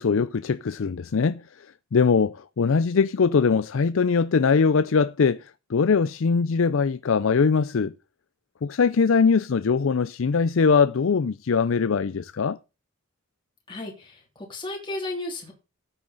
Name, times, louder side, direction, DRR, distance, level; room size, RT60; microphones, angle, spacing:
voice 1, 0.0-1.4 1.9-5.4 5.7-7.9 8.6-12.6, left 5 dB, 65° left, 0.5 m, -21 dB
voice 2, 13.7-15.5, left 2 dB, 20° left, 3.0 m, -34 dB
13.5 x 8.8 x 4.0 m
head